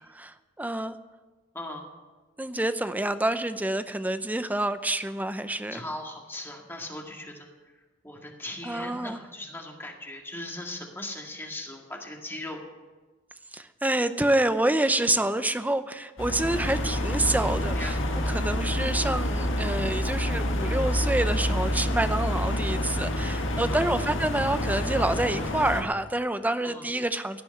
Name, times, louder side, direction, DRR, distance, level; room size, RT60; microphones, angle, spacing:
voice 1, 0.2-1.0 2.4-5.8 8.6-9.2 13.5-18.0 18.3-27.4, right 1 dB, 10° right, 11 dB, 0.6 m, -27 dB
voice 2, 1.5-1.9 5.7-7.5 8.0-12.6 17.7-17.9 23.7-23.9 26.6-26.8, left 1 dB, 10° left, 0 dB, 1.9 m, -38 dB
sound 1, 16.2-25.8, left 1 dB, 75° left, 1.8 m, -28 dB
16.5 x 6.9 x 9.7 m, 1.2 s
head